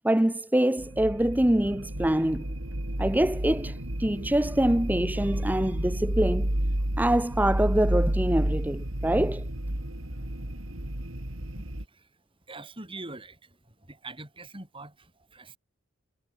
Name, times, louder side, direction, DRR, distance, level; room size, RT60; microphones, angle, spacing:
voice 1, 0.0-2.5 3.0-6.5 7.0-9.5, right 1 dB, 10° right, 0.7 m, -25 dB
sound 1, 0.8-11.8, right 1 dB, 80° right, 3.5 m, -30 dB
voice 2, 12.5-15.6, right 2 dB, 25° right, 7.4 m, -44 dB
head